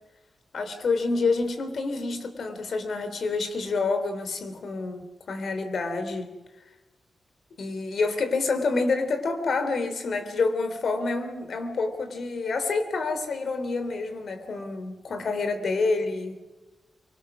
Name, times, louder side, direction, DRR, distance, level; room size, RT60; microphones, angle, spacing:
voice 1, 0.5-6.3 7.6-16.4, left 3 dB, 60° left, 9 dB, 3.3 m, -28 dB
25.0 x 24.0 x 6.2 m, 1.1 s
wide cardioid pair, 150°, 0 cm